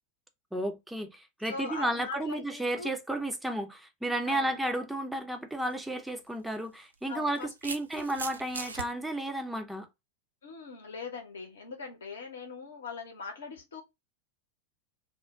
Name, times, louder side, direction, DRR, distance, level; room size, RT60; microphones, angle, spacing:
voice 1, 0.5-9.9, right 1 dB, 5° right, 0.5 m, -33 dB
voice 2, 1.5-2.9 4.3-4.6 7.1-8.1 10.4-13.8, left 4 dB, 65° left, 0.8 m, -41 dB
sound 1, 5.7-5.9 6.9-8.9, right 4 dB, 75° right, 0.3 m, -39 dB
2.3 x 2.0 x 3.4 m
figure-of-eight pair, 90°, 0 cm